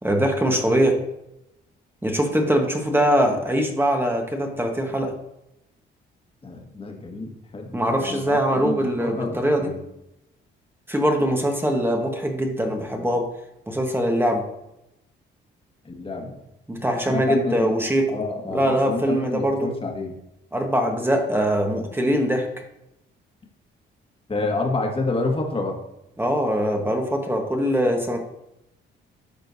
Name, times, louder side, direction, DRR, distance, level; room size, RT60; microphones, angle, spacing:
voice 1, 0.0-1.0 2.0-5.1 7.7-9.7 10.9-13.3 13.7-14.4 16.7-18.1 18.5-19.7 20.5-22.5 26.2-28.2, equal, 10° right, 2 dB, 1.2 m, -22 dB
voice 2, 6.4-9.8 11.2-11.3 15.8-16.4 17.1-17.7 18.1-20.1 24.3-25.8, left 3 dB, 25° left, 1 dB, 1.6 m, -29 dB
12.0 x 4.4 x 2.7 m, 0.85 s
cardioid pair, 90°, 20 cm